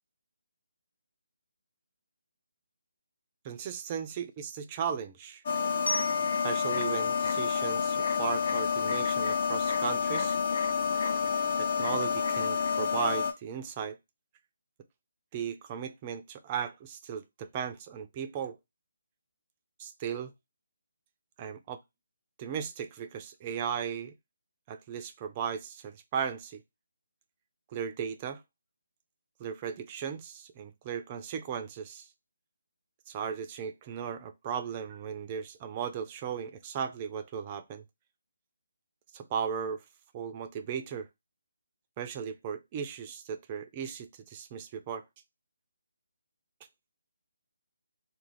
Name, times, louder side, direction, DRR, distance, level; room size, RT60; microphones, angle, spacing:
voice 1, 3.4-5.4 6.4-10.4 11.6-14.0 15.3-18.6 19.8-20.3 21.4-21.8 22.4-24.1 24.7-26.6 27.7-28.4 29.4-32.1 33.1-37.8 39.1-39.8 40.1-41.1 42.0-45.0, right 7 dB, 25° right, 0.4 m, -36 dB
sound 1, 5.5-13.3, left 6 dB, 50° left, 0.6 m, -29 dB
Glockenspiel, 5.9-8.7, left 1 dB, 90° left, 0.5 m, -40 dB
2.4 x 2.2 x 3.2 m
figure-of-eight pair, 155°, 0 cm